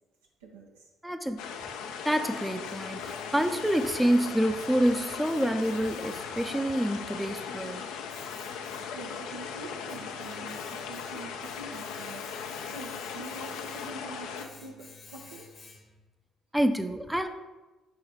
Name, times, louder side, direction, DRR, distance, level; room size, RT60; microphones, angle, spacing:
voice 1, 0.4-0.9 8.9-15.5, right 3 dB, 80° right, -1 dB, 0.6 m, -45 dB
voice 2, 1.0-1.5 2.0-3.0 3.3-7.8 16.5-17.3, equal, 5° right, 8 dB, 0.5 m, -27 dB
sound 1, 1.4-14.5, left 6 dB, 70° left, 0.4 m, -38 dB
Domestic sounds home sounds, 1.8-16.1, left 4 dB, 40° left, 0.9 m, -53 dB
5.7 x 3.9 x 4.4 m, 1.2 s
figure-of-eight pair, 45°, 0 cm